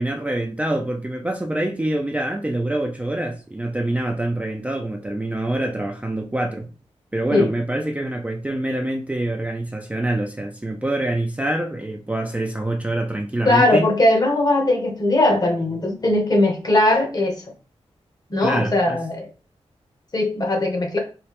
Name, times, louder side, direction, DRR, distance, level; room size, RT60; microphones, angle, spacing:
voice 1, 0.0-6.7 7.1-13.9 18.4-19.0, right 1 dB, 10° right, 0.4 m, -25 dB
voice 2, 13.4-17.4 18.3-19.2 20.1-21.0, left 2 dB, 35° left, 0.9 m, -19 dB
3.2 x 2.8 x 2.9 m
wide cardioid pair, 110°, 11 cm